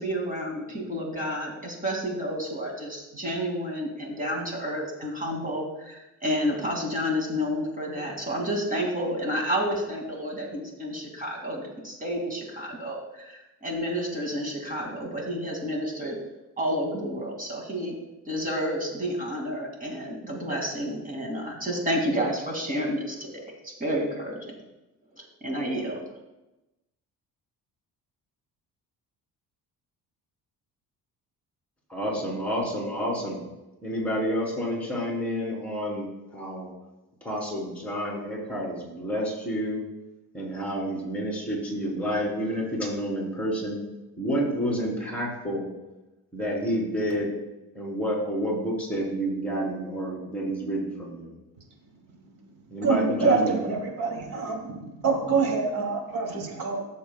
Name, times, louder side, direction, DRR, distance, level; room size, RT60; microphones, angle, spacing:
voice 1, 0.0-16.2 16.6-17.9 18.3-24.5 25.1-26.0, equal, 20° right, 0 dB, 2.6 m, -30 dB
voice 2, 31.9-33.4 33.8-36.7 37.2-39.8 40.3-43.8 44.2-45.7 46.3-47.3 47.7-51.3 52.7-53.6, equal, 5° left, -4 dB, 3.7 m, -29 dB
voice 3, 52.8-56.8, right 4 dB, 60° right, 0 dB, 2.9 m, -26 dB
16.5 x 7.0 x 2.4 m, 0.99 s
cardioid pair, 120°, 36 cm